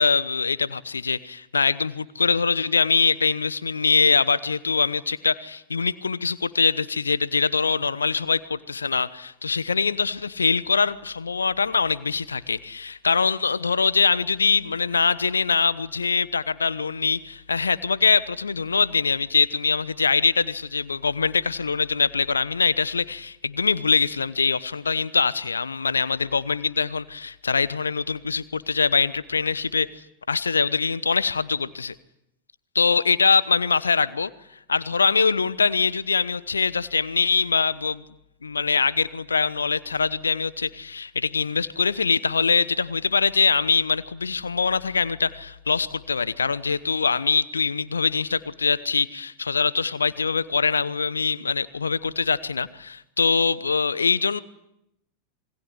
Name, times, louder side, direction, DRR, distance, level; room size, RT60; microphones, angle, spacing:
voice 1, 0.0-29.9 30.3-31.9 32.7-34.3 34.7-38.0 38.4-54.4, left 5 dB, 75° left, 18 dB, 1.0 m, -23 dB
27.0 x 22.0 x 10.0 m, 0.83 s
figure-of-eight pair, 90°, 0 cm